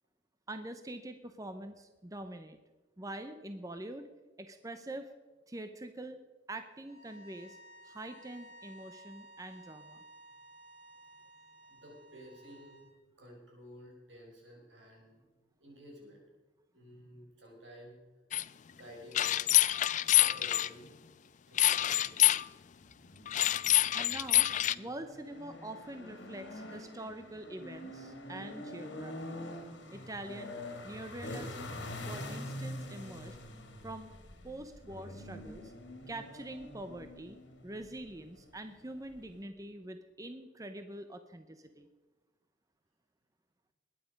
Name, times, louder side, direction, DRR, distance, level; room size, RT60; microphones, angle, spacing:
voice 1, 0.5-2.6 3.0-4.1 4.4-5.1 5.5-6.2 6.5-7.6 7.8-10.0 23.9-24.5 24.8-29.4 29.9-30.6 30.8-31.8 32.1-33.4 33.8-34.1 34.4-35.7 36.1-37.4 37.6-41.9, right 1 dB, 20° right, 8 dB, 0.7 m, -44 dB
sound 1, 6.8-12.9, right 1 dB, 35° right, 2.0 m, -55 dB
voice 2, 11.7-12.8 13.2-16.2 16.7-18.0 18.7-19.5 20.1-20.9 21.5-22.3, equal, 75° right, 0 dB, 5.3 m, -53 dB
sound 2, 18.3-18.4 19.1-20.7 21.6-22.4 23.3-24.7, left 14 dB, 40° left, 0.4 m, -26 dB
sound 3, 22.8-39.4, left 1 dB, 75° left, 2.5 m, -45 dB
20.5 x 9.5 x 5.2 m, 1.3 s
head